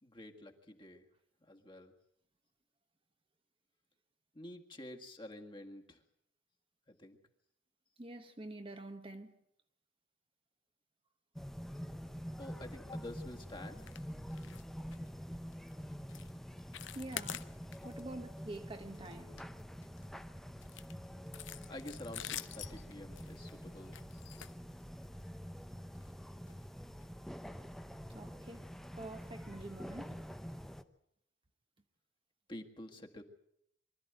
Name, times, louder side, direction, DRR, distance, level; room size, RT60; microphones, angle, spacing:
voice 1, 0.0-1.0 1.5-1.9 4.3-6.0 6.9-7.2 12.4-13.9 21.7-23.9 32.5-33.2, left 1 dB, 25° left, 1.8 m, -49 dB
voice 2, 8.0-9.3 16.9-17.5 17.8-19.4 28.1-28.7 29.0-30.2, right 2 dB, 30° right, 1.1 m, -47 dB
sound 1, 11.4-30.8, equal, ahead, 0.8 m, -47 dB
sound 2, 13.8-14.0 14.3-14.6 14.9-15.1 15.5-15.7 16.1-16.3 16.6-18.0 18.4-18.6 18.9-20.1 20.6-25.2 25.9-26.1 26.5-26.6 27.0-27.1, left 11 dB, 70° left, 0.8 m, -47 dB
24.0 x 13.5 x 9.1 m
head